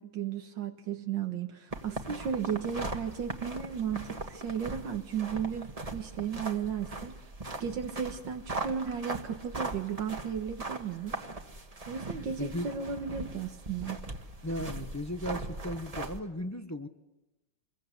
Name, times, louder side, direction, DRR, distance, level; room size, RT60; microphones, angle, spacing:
voice 1, 0.0-7.2 7.5-11.2 11.9-14.0, right 7 dB, 80° right, 5 dB, 2.0 m, -35 dB
sound 1, 1.7-16.2, right 2 dB, 20° right, 1.5 m, -40 dB
voice 2, 12.4-12.7 14.4-16.9, left 1 dB, 15° left, 8 dB, 0.5 m, -36 dB
26.5 x 22.0 x 8.2 m, 1.0 s
omnidirectional pair, 2.0 m